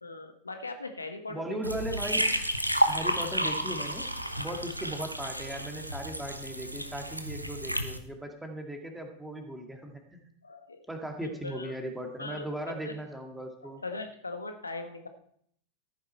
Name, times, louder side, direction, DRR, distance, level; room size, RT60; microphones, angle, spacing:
voice 1, 0.0-1.6 10.4-10.8 11.2-11.7 12.2-12.9 13.8-15.1, left 3 dB, 80° left, 7 dB, 1.3 m, -40 dB
voice 2, 1.3-2.3 2.8-4.1 4.4-10.2 10.9-13.8, right 1 dB, 5° right, 3 dB, 2.0 m, -38 dB
sound 1, 1.6-8.0, equal, 90° right, 1.0 m, -31 dB
14.0 x 9.3 x 4.2 m, 0.66 s
figure-of-eight pair, 90°, 0 cm